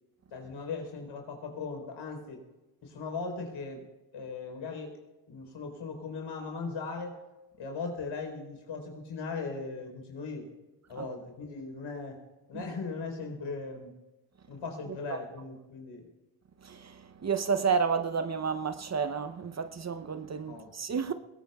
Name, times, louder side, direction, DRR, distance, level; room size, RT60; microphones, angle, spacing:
voice 1, 0.3-2.4 2.8-3.8 4.1-5.0 5.3-7.1 7.6-10.5 10.9-12.2 12.5-13.9 14.5-16.1 20.4-20.7, left 4 dB, 75° left, 4.1 m, -38 dB
voice 2, 16.6-21.1, right 6 dB, 35° right, 0.7 m, -31 dB
21.0 x 18.0 x 2.3 m
cardioid pair, 70°, 48 cm